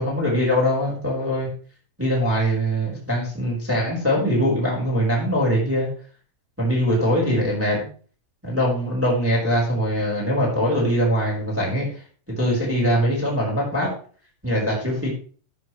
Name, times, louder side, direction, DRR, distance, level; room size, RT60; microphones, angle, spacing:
voice 1, 0.0-1.5 2.0-5.9 6.6-7.8 8.4-12.0 12.4-13.9 14.4-15.1, equal, 5° right, -4 dB, 4.2 m, -22 dB
14.5 x 9.8 x 3.2 m, 0.41 s
omnidirectional pair, 3.8 m